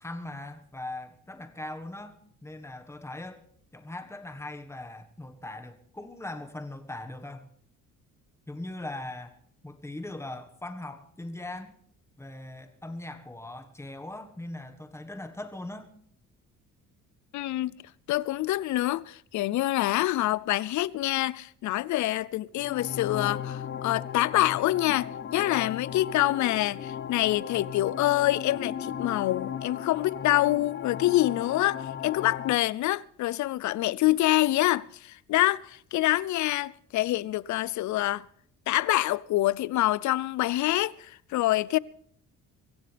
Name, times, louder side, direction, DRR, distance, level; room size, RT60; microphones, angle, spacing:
voice 1, 0.0-3.4 3.7-7.5 8.5-9.3 9.6-11.8 12.2-15.9, left 2 dB, 10° left, 1.4 m, -40 dB
voice 2, 17.3-17.8 18.1-38.2 38.7-41.8, left 16 dB, 65° left, 0.5 m, -26 dB
sound 1, 22.5-32.5, left 8 dB, 35° left, 0.9 m, -36 dB
23.5 x 15.5 x 3.4 m
cardioid pair, 125°, 32 cm